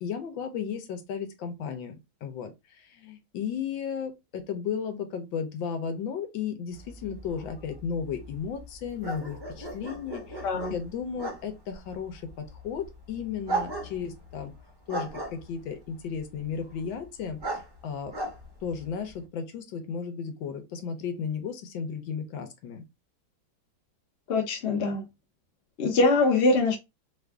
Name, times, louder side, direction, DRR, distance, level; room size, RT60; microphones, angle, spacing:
voice 1, 0.0-1.9 2.2-10.4 10.7-12.2 12.5-14.5 14.9-17.4 17.8-18.1 18.6-22.8, left 7 dB, 75° left, 1.4 m, -34 dB
sound 1, 6.7-19.2, right 2 dB, 25° right, 0.5 m, -38 dB
voice 2, 10.4-10.7 24.3-25.0 25.8-26.8, left 3 dB, 50° left, 0.8 m, -23 dB
3.4 x 2.5 x 3.3 m
omnidirectional pair, 2.2 m